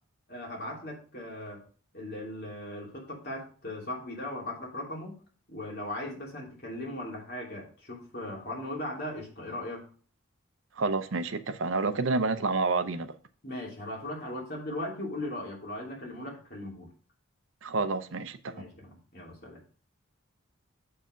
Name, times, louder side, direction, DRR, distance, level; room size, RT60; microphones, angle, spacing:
voice 1, 0.3-1.6 1.9-5.2 5.5-9.9 13.4-16.9 18.5-19.6, left 1 dB, 45° left, 2.9 m, -38 dB
voice 2, 10.8-13.1 17.6-18.5, right 3 dB, 65° right, 0.6 m, -29 dB
7.3 x 4.8 x 5.1 m
head